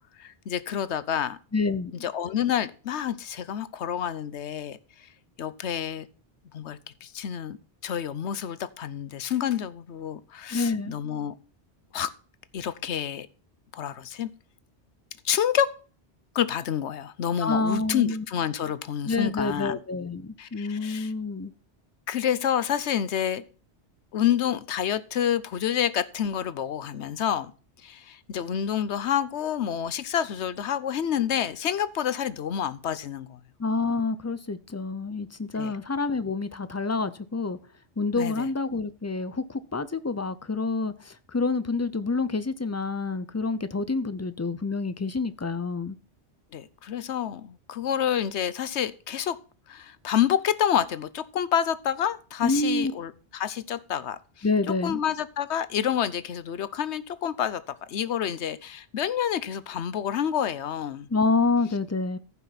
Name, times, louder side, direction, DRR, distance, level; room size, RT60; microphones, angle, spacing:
voice 1, 0.2-1.4 1.9-5.1 5.4-6.1 6.5-7.6 7.8-11.3 11.9-12.1 12.5-13.3 13.7-14.3 15.2-15.8 16.3-19.8 20.4-21.1 22.1-23.4 24.1-27.5 27.8-33.4 35.5-35.8 38.2-38.5 46.5-49.4 49.7-57.6 57.9-61.1, left 9 dB, 90° left, 1.1 m, -28 dB
voice 2, 1.5-1.9 10.5-10.9 17.4-18.2 19.1-21.5 33.6-37.6 38.0-39.4 39.7-40.9 41.3-46.0 52.4-52.9 54.4-55.0 61.1-62.2, left 3 dB, 20° left, 0.5 m, -27 dB
14.5 x 5.8 x 4.1 m
omnidirectional pair, 1.1 m